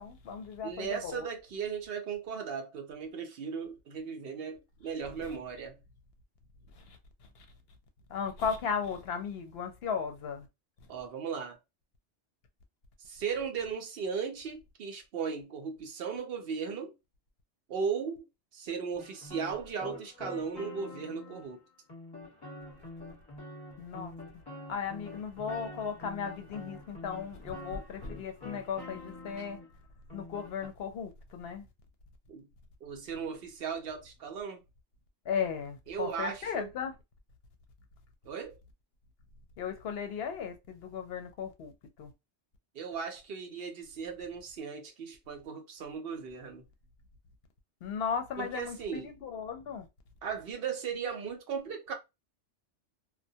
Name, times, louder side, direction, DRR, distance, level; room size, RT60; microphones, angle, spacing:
voice 1, 0.0-1.2 6.8-7.0 8.1-10.5 23.8-24.1 24.7-29.6 30.1-31.6 35.3-36.9 39.6-41.7 42.0-42.1 47.8-49.9, left 6 dB, 65° left, 0.7 m, -36 dB
voice 2, 0.6-5.8 10.9-11.6 13.0-16.9 17.7-18.3 18.5-21.6 29.4-29.5 32.3-32.5 32.8-34.6 35.9-36.7 38.2-38.6 42.7-46.6 48.4-49.1 50.2-51.9, right 6 dB, 60° right, 0.7 m, -37 dB
sound 1, 19.0-21.5 21.9-29.7 30.1-30.7, left 2 dB, 20° left, 1.0 m, -46 dB
2.2 x 2.1 x 2.6 m
omnidirectional pair, 1.2 m